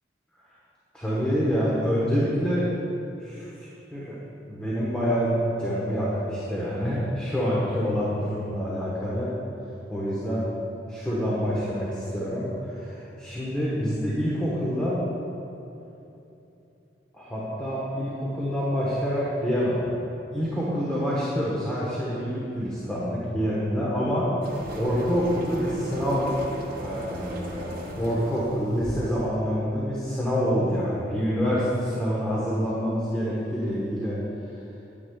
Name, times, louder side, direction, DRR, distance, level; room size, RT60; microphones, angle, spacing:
voice 1, 0.9-2.7 3.2-4.2 4.5-9.3 9.9-10.4 10.9-15.0 17.1-19.8 20.3-24.3 24.7-26.3 26.8-34.2, equal, 5° left, -8 dB, 1.1 m, -27 dB
sound 1, 24.4-29.2, right 1 dB, 55° right, 1.1 m, -37 dB
9.8 x 9.6 x 2.3 m, 2.9 s
head